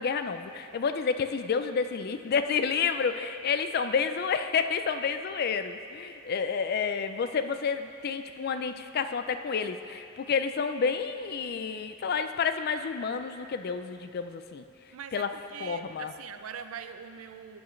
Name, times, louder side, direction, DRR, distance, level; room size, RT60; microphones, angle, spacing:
voice 1, 0.0-14.6 15.1-15.3 15.6-16.1, left 6 dB, 50° left, 9 dB, 0.4 m, -30 dB
voice 2, 14.9-17.6, right 7 dB, 85° right, 9 dB, 0.4 m, -42 dB
12.5 x 7.0 x 3.2 m, 2.6 s
head